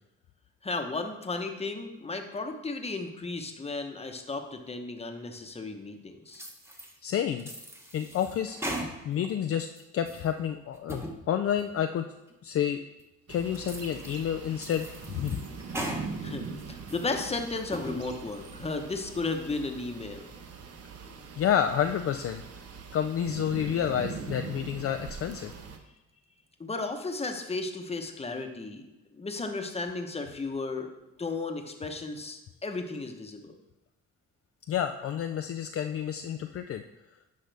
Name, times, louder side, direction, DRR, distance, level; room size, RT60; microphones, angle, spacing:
voice 1, 0.6-6.5 16.2-20.3 26.6-28.9 29.1-30.9 31.2-33.5, left 3 dB, 20° left, 5 dB, 1.0 m, -34 dB
sound 1, 6.3-6.9 7.4-9.3 9.7-10.3 10.7-11.2 11.6-11.7 12.3-12.4 13.0-13.1 13.5-14.2 14.6-16.0 16.4-17.1 17.6-18.0, right 1 dB, 10° right, 1.1 m, -39 dB
voice 2, 7.0-7.5 7.9-8.6 9.0-9.7 9.9-12.0 12.4-12.8 13.3-14.9 15.1-15.4 21.4-22.4 22.9-25.5 34.7-36.8, left 9 dB, 50° left, 6 dB, 0.4 m, -29 dB
sound 2, 13.3-25.8, right 5 dB, 55° right, 0.9 m, -42 dB
10.0 x 5.3 x 3.4 m, 0.97 s
cardioid pair, 90°, 30 cm